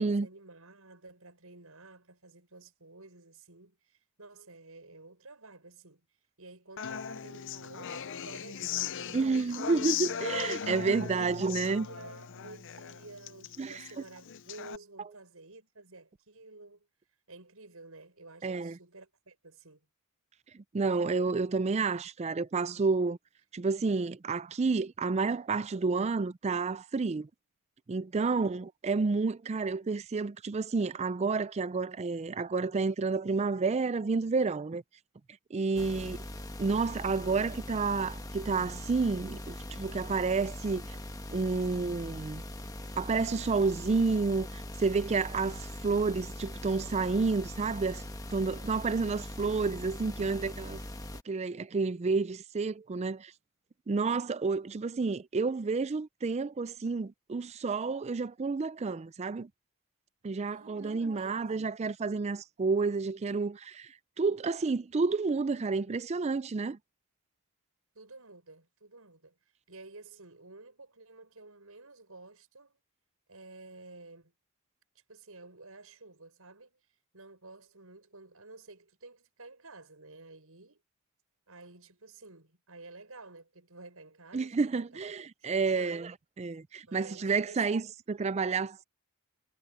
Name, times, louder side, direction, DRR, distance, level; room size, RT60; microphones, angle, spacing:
voice 1, 0.0-6.0 6.4-9.6 10.4-11.4 11.8-16.9 17.3-19.9 28.1-28.5 41.3-41.5 52.0-52.2 60.5-61.5 65.5-65.9 67.9-69.4 69.7-72.8 73.3-74.3 74.9-76.8 77.1-80.8 81.5-86.1 86.9-87.7, right 3 dB, 70° right, 6.8 m, -52 dB
Human voice / Acoustic guitar, 6.8-14.8, left 8 dB, 55° left, 0.6 m, -38 dB
voice 2, 9.1-11.9 13.6-13.8 18.4-18.8 20.5-23.2 23.5-27.3 27.9-34.8 35.5-36.2 36.6-41.0 41.3-42.4 43.0-48.0 48.3-50.8 51.3-53.3 53.9-59.5 60.2-66.8 84.3-88.8, right 4 dB, 30° right, 0.4 m, -30 dB
sound 1, 35.8-51.2, left 1 dB, 15° left, 1.3 m, -41 dB
head